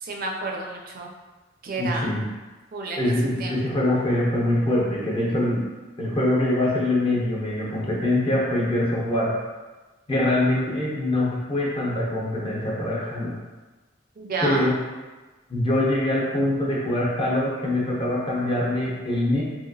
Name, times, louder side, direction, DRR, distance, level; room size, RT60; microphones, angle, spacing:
voice 1, 0.0-1.1 1.6-2.1 2.7-3.1 3.4-3.6 14.2-14.7, right 3 dB, 50° right, 1 dB, 0.4 m, -30 dB
voice 2, 1.8-2.3 3.0-5.6 6.0-9.3 10.1-13.3 14.4-14.7 15.5-19.4, left 1 dB, 30° left, -4 dB, 0.6 m, -24 dB
2.8 x 2.5 x 2.6 m, 1.2 s
head